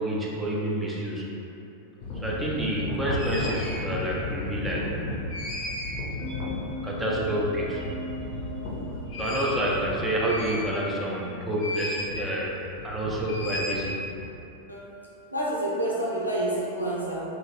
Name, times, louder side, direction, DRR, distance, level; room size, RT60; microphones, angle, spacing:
voice 1, 0.0-1.3 2.2-5.0 6.8-7.8 9.2-12.5 12.8-14.0, right 1 dB, 10° right, -5 dB, 0.5 m, -28 dB
sound 1, 2.0-11.0 11.6-12.2 12.5-14.3, left 1 dB, 40° left, 0.6 m, -33 dB
sound 2, 6.2-12.5, equal, 40° right, 1.0 m, -41 dB
voice 2, 15.3-17.2, right 1 dB, 85° left, -5 dB, 0.5 m, -28 dB
3.0 x 2.5 x 2.4 m, 2.8 s
figure-of-eight pair, 90°, 0 cm